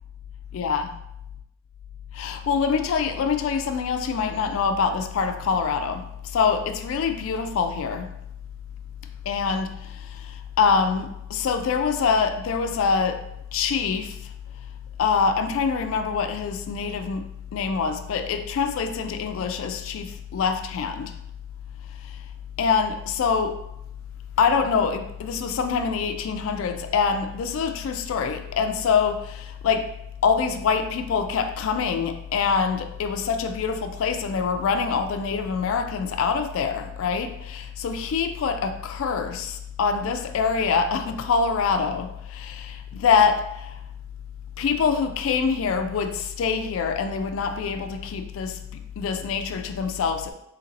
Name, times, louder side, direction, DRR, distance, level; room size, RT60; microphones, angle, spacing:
voice 1, 0.5-0.9 2.1-8.1 9.3-14.2 15.0-17.3 17.5-21.1 22.6-23.6 24.4-29.9 30.2-43.8 44.6-48.6 49.0-50.3, left 5 dB, 70° left, 0.3 m, -25 dB
4.0 x 2.8 x 2.7 m
head